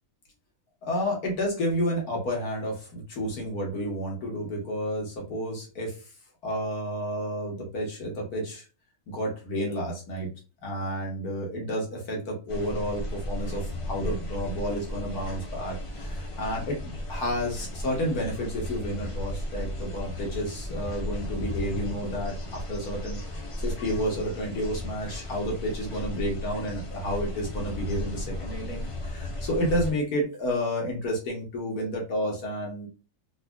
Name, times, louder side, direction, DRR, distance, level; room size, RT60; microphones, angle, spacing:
voice 1, 0.8-6.0 6.4-8.6 9.1-10.3 10.6-23.2 23.6-32.9, equal, 85° left, -1 dB, 1.7 m, -31 dB
sound 1, 12.5-29.9, left 1 dB, 45° left, 0.4 m, -35 dB
4.0 x 2.6 x 2.3 m, 0.33 s
omnidirectional pair, 1.6 m